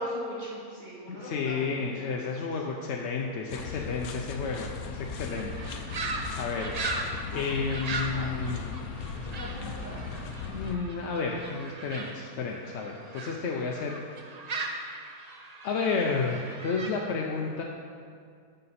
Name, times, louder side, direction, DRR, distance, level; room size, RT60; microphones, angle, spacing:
voice 1, 0.0-1.9 2.2-2.5 7.3-7.4 8.1-8.6 9.1-10.2 12.8-12.9, equal, 30° right, -7 dB, 2.1 m, -40 dB
voice 2, 1.1-5.5 6.4-6.7 7.3-8.7 10.4-14.0 15.6-17.6, left 4 dB, 60° left, 0 dB, 0.8 m, -31 dB
sound 1, 3.5-10.8, left 4 dB, 75° left, 1.1 m, -37 dB
sound 2, 5.3-13.4 13.7-16.9, right 3 dB, 60° right, 0.4 m, -38 dB
9.0 x 6.7 x 4.2 m, 2.2 s
omnidirectional pair, 1.6 m